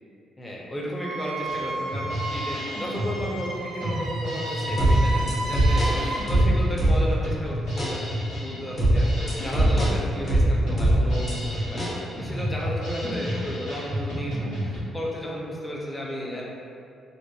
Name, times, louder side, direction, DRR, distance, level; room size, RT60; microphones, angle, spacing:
voice 1, 0.4-6.0 6.3-11.8 12.2-16.4, equal, 15° left, -4 dB, 0.5 m, -33 dB
Wind instrument woodwind instrument, 1.0-6.3, right 2 dB, 85° right, 0.5 m, -33 dB
Drum kit, 1.5-14.8, equal, 80° left, 1.4 m, -32 dB
sound 1, 4.8-7.3 7.8-8.0 8.8-11.3 11.8-12.0, right 1 dB, 40° left, 0.8 m, -21 dB
2.7 x 2.1 x 2.3 m, 2.5 s
cardioid pair, 90°, 0 cm